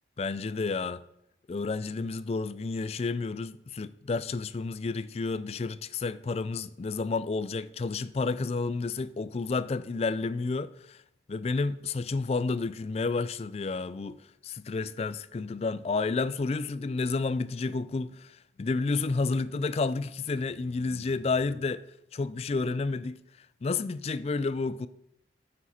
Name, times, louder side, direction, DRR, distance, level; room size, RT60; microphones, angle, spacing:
voice 1, 0.2-1.0 1.5-11.0 11.3-21.8 22.1-23.2 23.6-24.9, left 3 dB, 35° left, 0.3 m, -30 dB
9.9 x 7.2 x 4.2 m
head